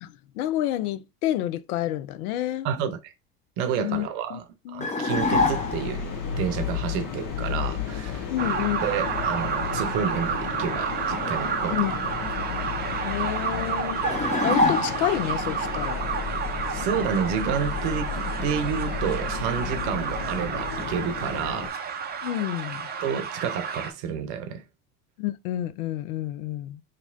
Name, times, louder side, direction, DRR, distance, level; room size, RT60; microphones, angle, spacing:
voice 1, 0.0-2.7 3.8-4.4 4.7-4.9 8.3-8.8 11.7-12.0 13.0-14.0 14.4-16.0 22.2-22.9 25.2-26.8, left 13 dB, 70° left, 0.5 m, -29 dB
voice 2, 2.6-3.1 3.6-6.0 6.3-8.3 8.8-11.8 16.7-21.7 23.0-24.6, right 8 dB, 55° right, 0.7 m, -30 dB
sound 1, 4.8-6.0 14.0-15.3, left 3 dB, 15° left, 0.7 m, -24 dB
sound 2, 5.1-21.7, left 7 dB, 45° left, 1.1 m, -33 dB
sound 3, 8.4-23.9, right 6 dB, 20° right, 0.5 m, -30 dB
2.9 x 2.9 x 2.5 m
hypercardioid pair, 75°, 46 cm